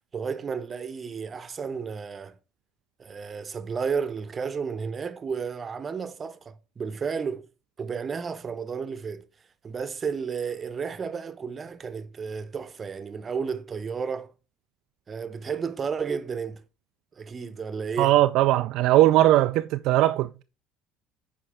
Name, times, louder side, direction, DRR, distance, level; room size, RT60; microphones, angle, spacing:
voice 1, 0.1-2.4 3.0-7.5 7.8-9.3 9.6-14.3 15.1-16.6 17.1-18.2, right 6 dB, 35° right, 0.8 m, -32 dB
voice 2, 18.0-20.4, right 15 dB, 65° right, 0.3 m, -20 dB
9.1 x 4.6 x 3.4 m
hypercardioid pair, 75°, 0 cm